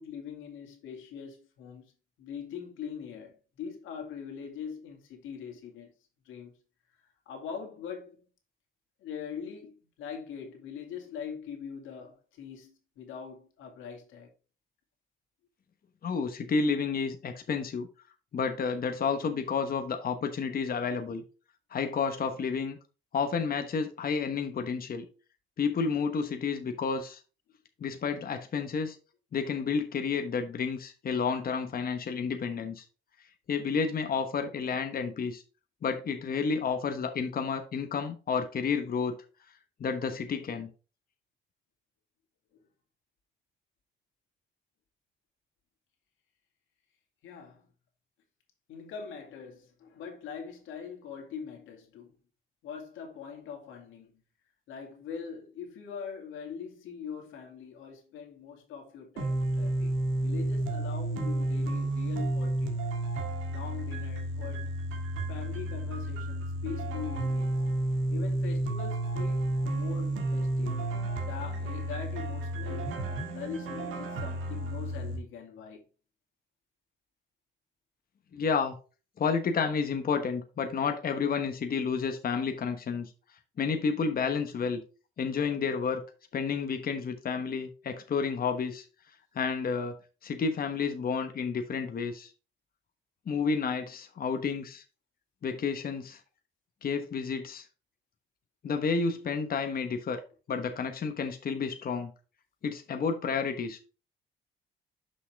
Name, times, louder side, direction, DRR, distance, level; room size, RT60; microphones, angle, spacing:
voice 1, 0.0-1.9 2.2-5.9 6.3-6.5 7.3-8.2 9.0-14.3 47.2-47.7 48.7-52.2 52.6-54.1 54.7-59.9 60.2-62.9 63.5-64.7 65.3-67.5 68.1-70.8 71.3-75.8, left 7 dB, 85° left, 2.3 m, -42 dB
voice 2, 16.0-17.9 18.3-21.2 21.7-22.8 23.1-25.1 25.6-27.2 27.8-29.0 29.3-32.8 33.5-35.4 35.8-39.1 39.8-40.7 78.3-78.7 79.2-83.1 83.6-84.8 85.2-86.0 86.3-88.8 89.3-90.0 90.2-92.3 93.3-94.8 95.4-96.2 96.8-97.6 98.6-100.2 100.5-102.1 102.6-103.8, left 5 dB, 50° left, 1.1 m, -30 dB
sound 1, 59.2-75.2, right 1 dB, 90° right, 1.7 m, -31 dB
6.4 x 5.6 x 3.5 m
cardioid pair, 90°, 20 cm